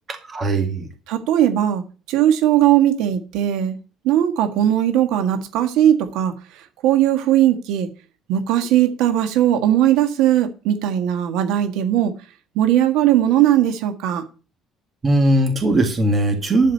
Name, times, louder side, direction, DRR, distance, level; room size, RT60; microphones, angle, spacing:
voice 1, 0.1-0.9 15.0-16.7, right 1 dB, 25° right, 5 dB, 2.0 m, -19 dB
voice 2, 1.1-1.8 2.1-3.8 4.0-6.3 6.8-7.9 8.3-12.1 12.5-14.2, right 11 dB, 85° right, 7 dB, 1.5 m, -18 dB
11.5 x 5.0 x 8.2 m, 0.36 s
cardioid pair, 170°, 0 cm